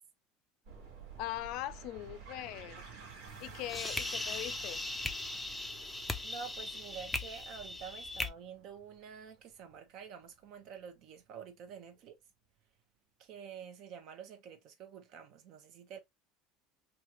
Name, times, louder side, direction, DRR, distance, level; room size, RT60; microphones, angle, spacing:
sound 1, 0.6-11.7, right 5 dB, 80° right, 1.2 m, -53 dB
voice 1, 1.2-2.8 3.4-4.8, left 14 dB, 60° left, 0.4 m, -41 dB
sound 2, 3.3-8.3, left 2 dB, 5° left, 0.5 m, -39 dB
voice 2, 6.2-12.2 13.2-16.0, right 7 dB, 55° right, 0.8 m, -48 dB
3.1 x 2.4 x 2.8 m
supercardioid pair, 135°, 0 cm